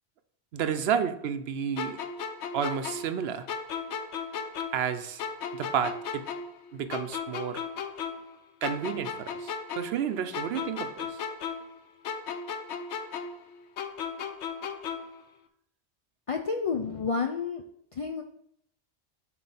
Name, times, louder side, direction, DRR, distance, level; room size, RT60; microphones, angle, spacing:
voice 1, 0.5-2.0 2.5-3.5 4.7-5.2 5.5-6.3 6.7-7.6 8.6-11.2, right 8 dB, 70° right, 10 dB, 0.8 m, -31 dB
sound 1, 1.8-4.9 5.2-8.3 8.6-11.8 12.0-15.2, left 6 dB, 85° left, 1.0 m, -36 dB
voice 2, 16.3-17.6 18.0-18.2, left 5 dB, 60° left, 4 dB, 0.3 m, -30 dB
7.5 x 3.1 x 5.4 m, 0.70 s
omnidirectional pair, 1.1 m